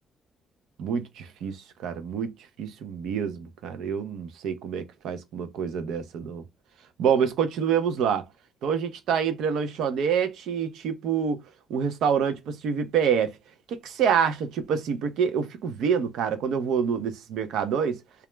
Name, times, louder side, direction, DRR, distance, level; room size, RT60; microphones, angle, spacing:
voice 1, 0.8-1.6 1.8-2.3 2.6-6.4 7.0-8.2 8.6-11.4 11.7-13.3 13.7-18.0, right 7 dB, 85° right, 0.5 m, -26 dB
2.3 x 2.0 x 3.1 m
cardioid pair, 105°, 0 cm